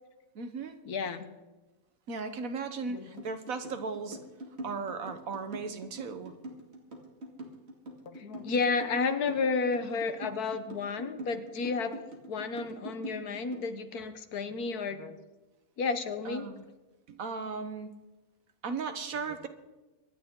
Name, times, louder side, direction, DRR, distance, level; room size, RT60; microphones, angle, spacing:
voice 1, 0.3-0.8 2.1-4.2 4.6-6.3 16.2-16.7 17.1-17.9 18.6-19.5, right 4 dB, 60° right, 8 dB, 1.5 m, -36 dB
voice 2, 0.8-1.4 2.9-3.2 8.1-12.0 12.3-15.2 15.8-16.5, left 4 dB, 75° left, 9 dB, 1.6 m, -32 dB
sound 1, 3.2-13.7, right 1 dB, 40° right, 2.6 m, -44 dB
25.0 x 10.5 x 3.8 m, 1.1 s
omnidirectional pair, 1.7 m